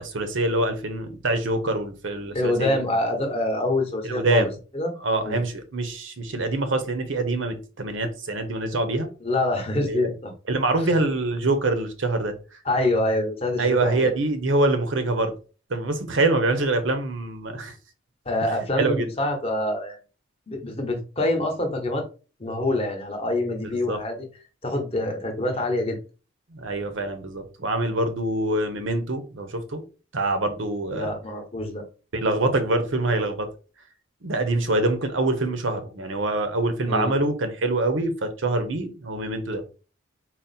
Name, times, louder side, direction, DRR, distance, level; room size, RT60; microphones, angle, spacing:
voice 1, 0.0-2.8 4.0-4.5 5.0-9.1 9.8-10.1 10.5-12.4 13.6-15.4 15.7-17.7 18.8-19.1 23.6-24.0 26.5-29.8 30.1-31.1 32.1-33.5 34.2-39.6, right 2 dB, 85° right, 0.8 m, -25 dB
voice 2, 2.3-4.5 4.7-4.9 5.2-5.4 9.2-10.3 12.6-14.1 18.2-20.0 20.5-22.1 22.4-24.2 24.6-26.0 30.9-31.8 36.8-37.1, left 1 dB, 30° left, 0.9 m, -25 dB
4.1 x 2.0 x 4.0 m
head